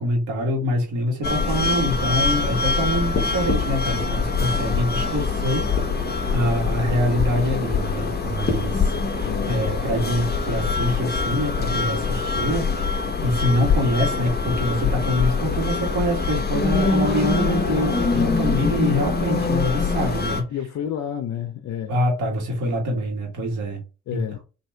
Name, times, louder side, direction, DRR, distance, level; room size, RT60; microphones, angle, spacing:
voice 1, 0.0-12.7 13.0-20.5 21.9-23.8 24.1-24.2, equal, 80° right, 1.8 m, -25 dB
sound 1, 1.2-20.4, left 4 dB, 30° left, 1.2 m, -23 dB
voice 2, 9.2-9.7 20.5-21.9 24.1-24.4, left 9 dB, 60° left, 0.7 m, -30 dB
4.1 x 2.8 x 4.5 m
cardioid pair, 90°, 30 cm